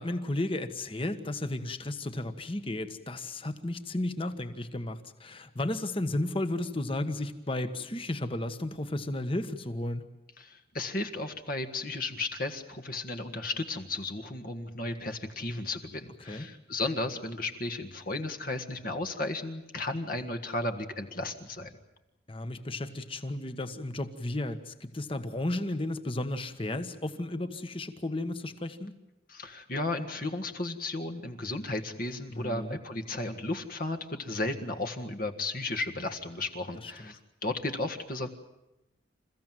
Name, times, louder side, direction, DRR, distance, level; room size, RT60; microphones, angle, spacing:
voice 1, 0.0-10.0 16.2-16.5 22.3-28.9 32.3-32.8 36.7-37.1, left 1 dB, 30° left, 9 dB, 1.4 m, -33 dB
voice 2, 10.4-21.7 29.3-38.3, left 2 dB, 50° left, 7 dB, 1.8 m, -34 dB
28.5 x 15.5 x 9.2 m, 0.96 s
head